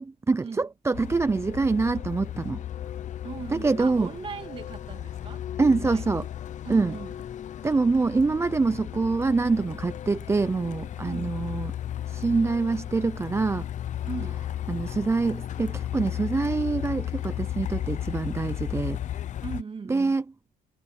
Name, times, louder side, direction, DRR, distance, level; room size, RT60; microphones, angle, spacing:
voice 1, 0.0-2.6 3.5-4.1 5.6-6.3 6.7-6.9 7.6-11.7 12.1-13.7 14.7-19.0 19.9-20.2, right 3 dB, 15° right, 0.5 m, -25 dB
Truck, 0.9-19.6, left 11 dB, 45° left, 0.7 m, -35 dB
voice 2, 3.2-6.1 6.6-7.2 11.0-11.4 14.0-14.4 19.4-20.2, right 5 dB, 30° right, 2.5 m, -39 dB
cardioid pair, 110°, 17 cm